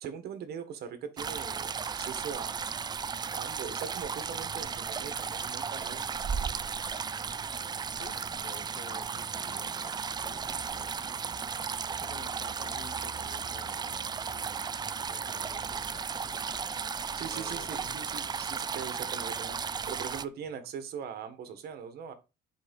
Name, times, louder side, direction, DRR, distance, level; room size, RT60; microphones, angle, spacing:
voice 1, 0.0-2.7 3.3-6.0 17.1-22.1, right 7 dB, 70° right, 1.7 m, -41 dB
sound 1, 1.2-20.2, right 6 dB, 25° right, 0.4 m, -35 dB
voice 2, 7.9-10.9 11.9-14.7 15.0-16.8 17.3-18.0, left 8 dB, 55° left, 1.2 m, -51 dB
7.8 x 5.1 x 5.4 m
cardioid pair, 110°, 17 cm